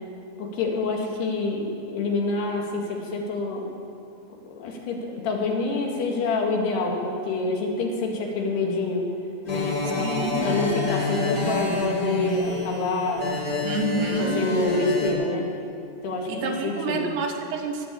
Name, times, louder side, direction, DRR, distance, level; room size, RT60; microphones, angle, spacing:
voice 1, 0.4-3.7 4.5-9.1 9.5-13.2 13.9-15.5 16.0-17.1, left 3 dB, 70° left, 0 dB, 4.0 m, -27 dB
sound 1, 9.4-15.1, left 3 dB, 30° left, 3.7 m, -28 dB
voice 2, 10.0-10.5 13.6-14.4 16.3-17.9, right 3 dB, 85° right, 2 dB, 3.8 m, -29 dB
20.5 x 8.2 x 8.4 m, 2.7 s
omnidirectional pair, 4.9 m